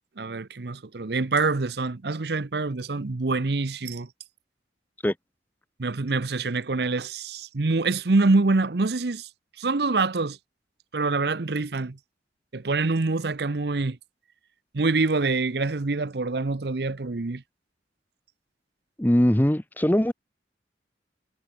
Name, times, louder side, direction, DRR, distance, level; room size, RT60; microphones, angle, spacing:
voice 1, 0.2-4.1 5.8-9.3 9.6-10.4 10.9-12.0 12.5-14.0 14.7-17.4, right 3 dB, 60° right, 0.8 m, -25 dB
voice 2, 19.0-20.1, equal, 10° left, 0.9 m, -21 dB
head